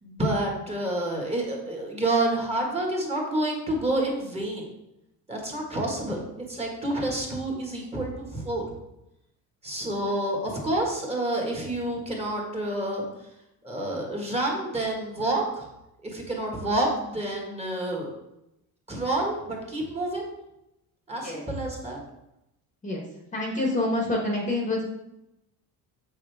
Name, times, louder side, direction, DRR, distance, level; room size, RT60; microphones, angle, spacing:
voice 1, 0.0-4.7 5.3-8.6 9.6-13.0 13.6-15.6 16.0-18.1 18.9-20.2 21.1-22.0, right 1 dB, 15° right, -1 dB, 1.6 m, -28 dB
voice 2, 23.3-24.8, left 2 dB, 20° left, -1 dB, 1.1 m, -27 dB
7.2 x 6.5 x 3.4 m, 0.88 s
cardioid pair, 165°, 38 cm